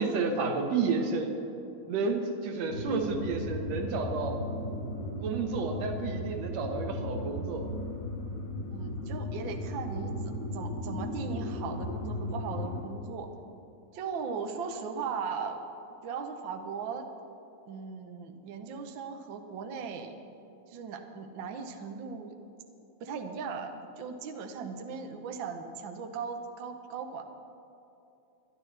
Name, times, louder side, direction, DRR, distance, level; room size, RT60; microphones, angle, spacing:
voice 1, 0.0-1.4 1.9-4.4 5.2-7.7, right 4 dB, 65° right, 4 dB, 2.1 m, -31 dB
sound 1, 2.7-12.8, left 1 dB, 80° left, 2.8 m, -36 dB
voice 2, 8.7-13.3 13.9-15.6 16.0-17.1 17.7-20.2 20.7-22.3 23.0-27.2, right 5 dB, 85° right, 5 dB, 1.0 m, -38 dB
22.5 x 11.0 x 3.3 m, 2.8 s
omnidirectional pair, 3.4 m